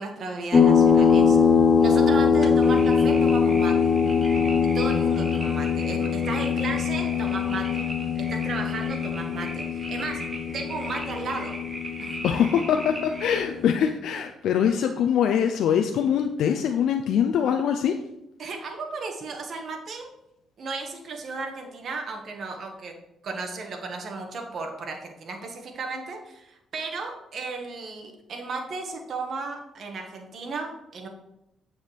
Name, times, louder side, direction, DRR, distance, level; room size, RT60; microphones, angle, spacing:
voice 1, 0.0-1.4 1.8-4.0 4.6-7.9 8.2-10.2 10.5-11.6 12.0-12.1 18.4-20.1 20.6-22.9 23.2-31.1, right 3 dB, 55° right, 3 dB, 1.7 m, -34 dB
sound 1, 0.5-13.6, left 6 dB, 35° left, 1.0 m, -22 dB
sound 2, 2.6-13.4, right 1 dB, 25° right, 1.8 m, -39 dB
voice 2, 12.2-18.0, left 8 dB, 75° left, 5 dB, 0.5 m, -23 dB
8.9 x 7.1 x 3.4 m, 0.87 s
cardioid pair, 90°, 0 cm